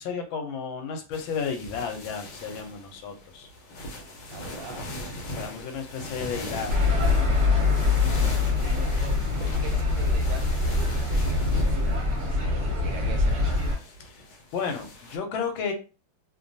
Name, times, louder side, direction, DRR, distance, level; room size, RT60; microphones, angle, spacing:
voice 1, 0.0-3.5 5.3-6.8 14.0-14.2 14.5-15.7, left 6 dB, 80° left, 5 dB, 1.4 m, -33 dB
sound 1, 1.1-15.2, left 1 dB, 65° left, 1.2 m, -39 dB
voice 2, 4.3-4.8 8.2-13.5, right 5 dB, 75° right, 4 dB, 1.2 m, -44 dB
sound 2, 6.7-13.8, left 3 dB, 35° right, 1.2 m, -24 dB
3.1 x 2.2 x 2.6 m, 0.34 s
omnidirectional pair, 2.2 m